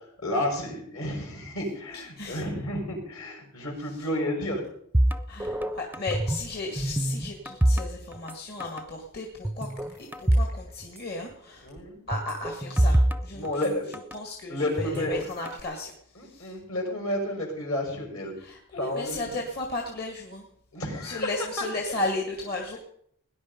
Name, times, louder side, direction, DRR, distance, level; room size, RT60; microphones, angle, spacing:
voice 1, 0.2-4.6 11.6-12.0 13.3-14.0 14.5-15.1 16.2-18.3 18.7-19.2 20.7-21.3 21.6-21.7, left 1 dB, 70° left, 1 dB, 5.4 m, -31 dB
voice 2, 1.9-2.4 3.8-4.1 5.3-9.7 10.0-11.7 12.1-13.8 14.1-16.6 18.4-20.5 20.9-22.8, left 2 dB, 45° left, 2 dB, 2.0 m, -35 dB
sound 1, 4.9-6.5 6.8-8.4 8.6-8.8 9.4-10.6 10.8-10.9 12.1-14.2 14.8-15.6, right 1 dB, 10° right, 0.5 m, -25 dB
18.5 x 10.5 x 5.3 m, 0.68 s
head